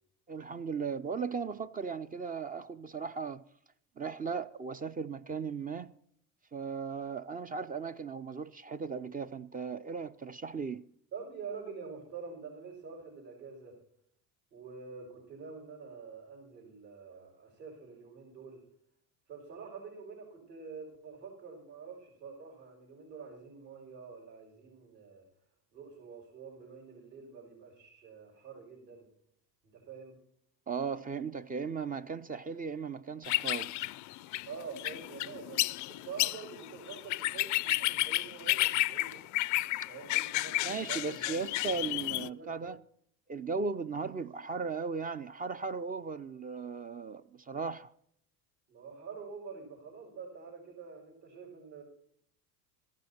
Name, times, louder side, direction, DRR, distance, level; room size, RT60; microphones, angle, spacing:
voice 1, 0.3-3.4 4.0-5.9 6.5-10.8 30.7-33.7 40.6-42.8 43.3-47.9, right 5 dB, 20° right, 0.4 m, -37 dB
voice 2, 11.1-13.8 14.5-18.6 19.3-25.2 25.7-29.1 29.6-30.2 34.5-39.2 39.9-41.4 42.2-42.5 48.7-51.8, right 5 dB, 65° right, 6.1 m, -47 dB
sound 1, 33.2-42.3, left 18 dB, 45° left, 0.4 m, -32 dB
14.0 x 11.5 x 4.3 m
hypercardioid pair, 75°, 45 cm